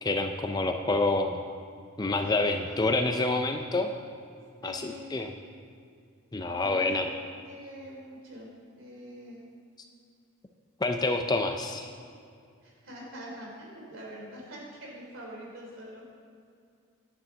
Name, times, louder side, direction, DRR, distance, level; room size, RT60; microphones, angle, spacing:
voice 1, 0.0-1.4 2.0-3.9 4.6-5.3 6.3-7.1 10.8-11.9, left 2 dB, 20° left, 5 dB, 0.5 m, -27 dB
voice 2, 2.2-2.8 4.6-5.3 6.5-7.2 7.4-9.4 12.6-16.2, equal, 60° right, -2 dB, 3.6 m, -45 dB
10.5 x 9.7 x 6.1 m, 2.3 s
head